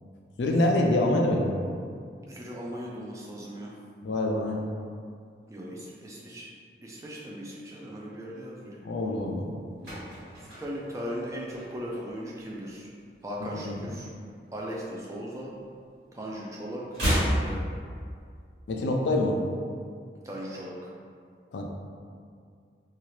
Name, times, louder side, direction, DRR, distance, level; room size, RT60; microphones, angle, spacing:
voice 1, 0.4-1.5 4.0-4.6 8.8-9.5 13.4-13.8 18.7-19.4 21.5-21.6, left 1 dB, 85° left, 0 dB, 0.4 m, -25 dB
voice 2, 2.3-3.7 5.5-6.5 6.8-9.2 10.4-12.9 13.2-14.1 14.5-15.5 16.1-17.6 20.2-20.9, equal, 15° right, -4 dB, 0.3 m, -38 dB
sound 1, 9.4-12.1 12.4-12.7 13.0-14.4 14.7-16.1 16.3-18.4 18.7-18.8, equal, 85° right, 1.4 m, -32 dB
2.8 x 2.4 x 3.1 m, 2.2 s
head